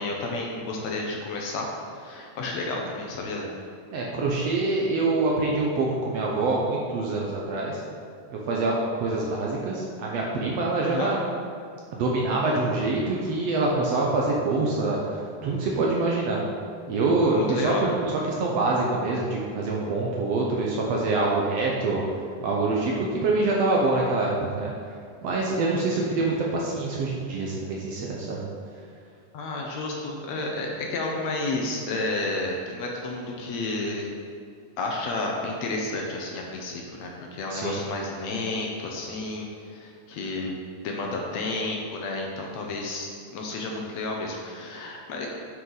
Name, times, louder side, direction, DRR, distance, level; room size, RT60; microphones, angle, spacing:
voice 1, 0.0-3.5 10.9-11.1 17.4-17.9 29.3-34.1 34.8-40.5 40.8-45.3, left 2 dB, 70° left, 0 dB, 1.9 m, -31 dB
voice 2, 3.9-7.8 8.3-11.2 12.0-16.4 16.9-22.0 22.4-24.7 25.2-28.4 37.5-37.8, right 3 dB, 70° right, -3 dB, 1.7 m, -25 dB
9.4 x 5.7 x 4.0 m, 2.3 s
omnidirectional pair, 3.6 m